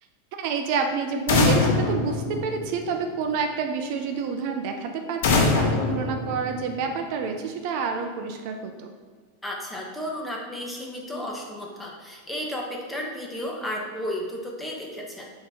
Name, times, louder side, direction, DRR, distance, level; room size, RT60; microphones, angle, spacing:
voice 1, 0.4-8.9, right 5 dB, 55° right, 4 dB, 0.6 m, -28 dB
sound 1, 1.3-3.1 5.2-7.0, left 3 dB, 75° left, 1.1 m, -23 dB
voice 2, 9.4-15.3, left 1 dB, 5° left, -2 dB, 1.0 m, -33 dB
6.4 x 3.0 x 4.9 m, 1.5 s
supercardioid pair, 145°, 0 cm